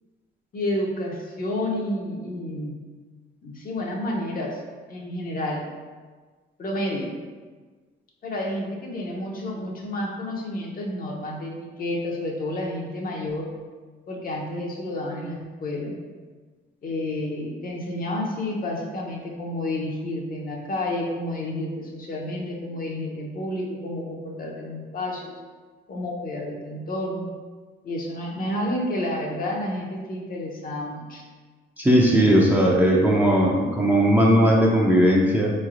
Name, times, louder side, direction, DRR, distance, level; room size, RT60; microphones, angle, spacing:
voice 1, 0.5-2.8 3.4-4.6 4.9-5.6 6.6-7.2 8.2-13.5 14.1-16.0 16.8-25.3 25.9-27.3 27.8-31.2, left 1 dB, 45° left, -2 dB, 0.7 m, -30 dB
voice 2, 31.8-35.5, equal, 10° right, -3 dB, 0.6 m, -18 dB
3.6 x 3.2 x 2.5 m, 1.4 s
cardioid pair, 90°, 20 cm